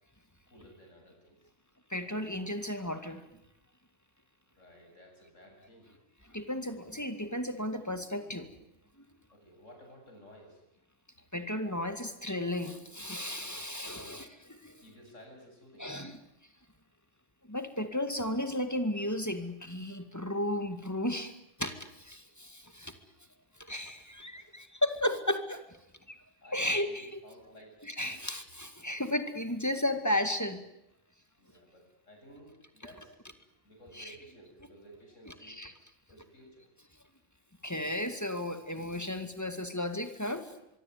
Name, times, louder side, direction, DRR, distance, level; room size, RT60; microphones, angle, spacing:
voice 1, 0.5-1.5 4.5-5.9 9.3-10.6 13.3-14.2 14.8-15.9 22.6-22.7 24.3-25.2 26.1-28.2 31.4-33.1 33.6-35.6 36.1-36.7, equal, 85° left, 2 dB, 8.2 m, -55 dB
voice 2, 1.9-3.2 6.3-8.5 11.3-14.8 15.8-16.1 17.4-22.9 23.6-25.6 26.1-26.2 26.5-26.9 27.8-30.6 33.9-34.1 35.4-35.7 37.6-40.5, left 1 dB, 15° left, 8 dB, 2.2 m, -34 dB
24.0 x 23.5 x 9.5 m, 0.82 s
omnidirectional pair, 1.3 m